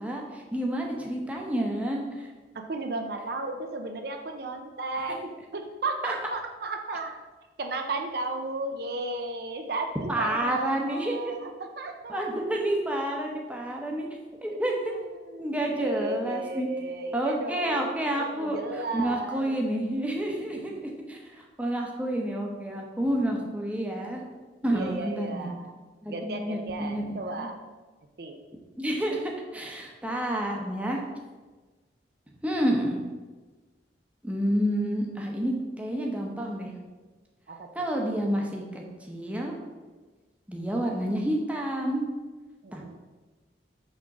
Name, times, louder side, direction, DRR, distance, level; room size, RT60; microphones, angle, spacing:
voice 1, 0.0-2.3 5.4-5.5 6.0-6.1 10.1-11.3 12.1-14.1 14.4-14.9 15.4-16.7 17.1-24.2 24.6-25.5 26.0-27.5 28.8-31.0 32.4-33.0 34.2-36.7 37.7-39.5 40.5-42.0 42.7-43.0, right 1 dB, 5° right, 0 dB, 0.9 m, -29 dB
voice 2, 2.5-7.2 7.6-12.2 14.5-14.6 14.9-17.9 18.2-19.5 24.7-25.7 26.1-27.6 28.2-28.4 37.5-37.7 42.6-43.0, right 2 dB, 55° right, 5 dB, 0.6 m, -34 dB
6.3 x 3.6 x 5.9 m, 1.3 s
head